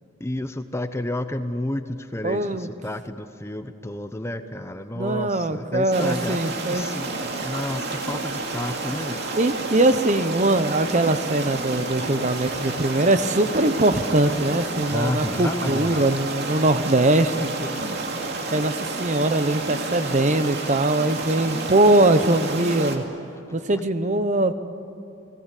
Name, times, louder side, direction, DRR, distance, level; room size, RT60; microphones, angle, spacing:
voice 1, 0.2-6.4 6.7-9.2 14.9-16.1, left 1 dB, 15° left, 10 dB, 0.8 m, -31 dB
voice 2, 2.2-2.7 4.9-6.8 9.3-18.0 18.5-23.0 23.5-24.5, right 2 dB, 35° right, 11 dB, 0.9 m, -21 dB
sound 1, 5.9-23.0, right 3 dB, 55° right, 2.6 m, -30 dB
29.5 x 19.5 x 8.4 m, 2.7 s
head